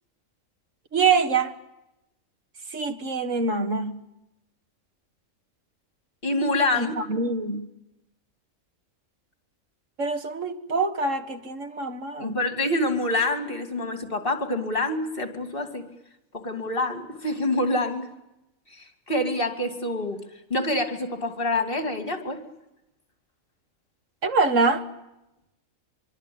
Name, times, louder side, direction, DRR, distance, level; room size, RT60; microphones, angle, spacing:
voice 1, 0.9-1.5 2.7-4.0 6.8-7.7 10.0-12.4 24.2-24.8, right 4 dB, 60° right, 2.1 m, -25 dB
voice 2, 6.2-7.0 12.2-15.8 16.3-18.1 18.7-20.2 20.5-22.4, left 1 dB, 40° left, 2.9 m, -26 dB
25.0 x 23.5 x 8.7 m
omnidirectional pair, 1.5 m